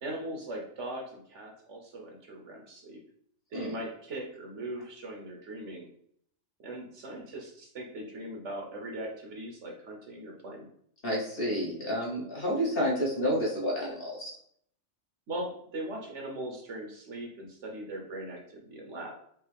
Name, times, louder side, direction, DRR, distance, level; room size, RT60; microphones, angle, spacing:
voice 1, 0.0-3.0 3.5-5.9 6.6-10.7 15.3-19.1, right 1 dB, 65° right, 0 dB, 1.2 m, -40 dB
voice 2, 11.0-14.3, equal, 45° left, -4 dB, 1.4 m, -30 dB
4.8 x 2.9 x 3.4 m, 0.67 s
omnidirectional pair, 1.4 m